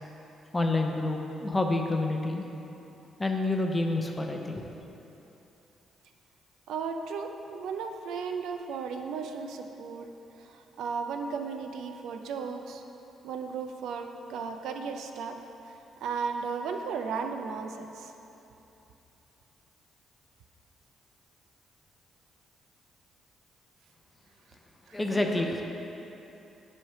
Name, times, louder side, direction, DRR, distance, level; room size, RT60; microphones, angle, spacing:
voice 1, 0.5-2.5 3.2-4.6 24.9-25.6, left 2 dB, 20° left, 3 dB, 0.6 m, -28 dB
voice 2, 6.7-10.1 10.4-12.8 13.2-15.4 15.7-18.1 24.9-25.0, right 5 dB, 80° right, 5 dB, 0.4 m, -35 dB
7.6 x 3.2 x 5.6 m, 3.0 s
cardioid pair, 90°, 0 cm